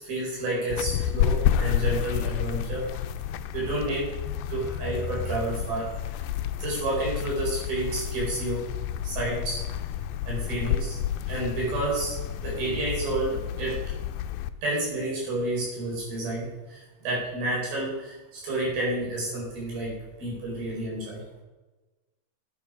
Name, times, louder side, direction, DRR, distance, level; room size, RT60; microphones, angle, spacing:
voice 1, 0.0-2.9 3.5-4.1 4.5-5.9 6.6-8.6 9.0-9.6 10.2-11.0 11.3-13.8 14.6-19.9 20.2-21.2, right 2 dB, 85° right, -4 dB, 6.7 m, -30 dB
sound 1, 0.7-14.5, left 10 dB, 85° left, 2.3 m, -30 dB
11.0 x 9.3 x 5.0 m, 1.2 s
omnidirectional pair, 4.2 m